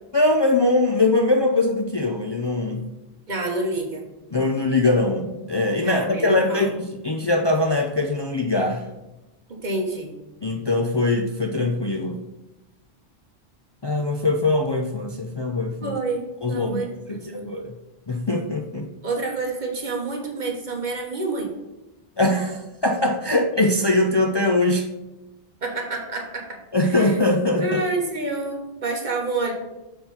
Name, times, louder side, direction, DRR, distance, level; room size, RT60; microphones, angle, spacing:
voice 1, 0.1-2.8 4.3-8.9 10.4-12.2 13.8-15.9 16.4-17.7 18.1-18.9 22.2-24.9 26.7-27.8, left 2 dB, 45° left, 2 dB, 0.3 m, -22 dB
voice 2, 3.3-4.1 5.8-6.7 9.5-10.1 15.8-17.4 19.0-21.5 25.6-26.5 26.8-27.2 27.6-29.5, right 3 dB, 45° right, 1 dB, 1.3 m, -28 dB
7.1 x 3.7 x 5.4 m, 1.0 s
omnidirectional pair, 1.1 m